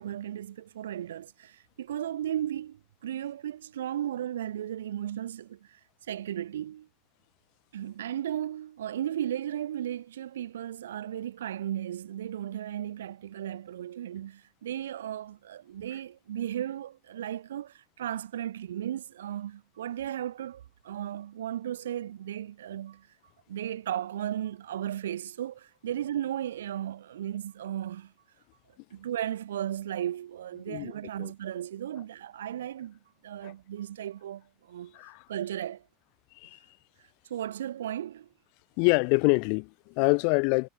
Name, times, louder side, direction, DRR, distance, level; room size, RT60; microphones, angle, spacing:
voice 1, 0.0-5.8 6.1-6.9 7.7-23.1 23.5-28.1 28.9-35.0 35.3-35.8 37.3-38.3, right 11 dB, 75° right, 2.5 m, -35 dB
voice 2, 38.8-40.7, left 40 dB or more, 60° left, 2.2 m, -25 dB
figure-of-eight pair, 80°, 0 cm